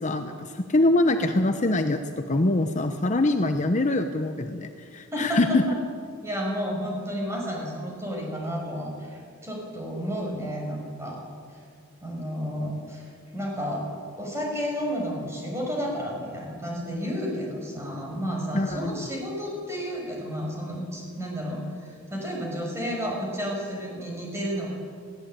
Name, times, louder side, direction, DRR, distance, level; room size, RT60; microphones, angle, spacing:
voice 1, 0.0-5.6 18.5-19.0, left 2 dB, 35° left, 7 dB, 0.9 m, -24 dB
voice 2, 5.1-5.8 6.2-11.2 12.0-13.8 14.2-24.7, equal, 15° right, -1 dB, 5.8 m, -31 dB
20.5 x 17.0 x 8.9 m, 2.2 s
head